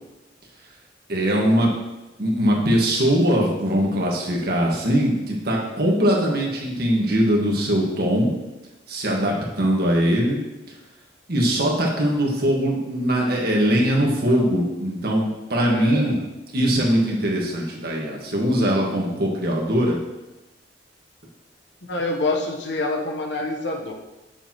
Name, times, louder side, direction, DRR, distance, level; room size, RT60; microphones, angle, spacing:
voice 1, 1.1-1.7 2.2-8.3 8.9-10.4 11.3-16.2 16.5-20.0, equal, 60° right, -1 dB, 1.6 m, -21 dB
voice 2, 15.6-16.2 21.9-23.9, left 2 dB, 75° left, 1 dB, 1.0 m, -26 dB
8.2 x 6.7 x 3.0 m, 1.0 s
head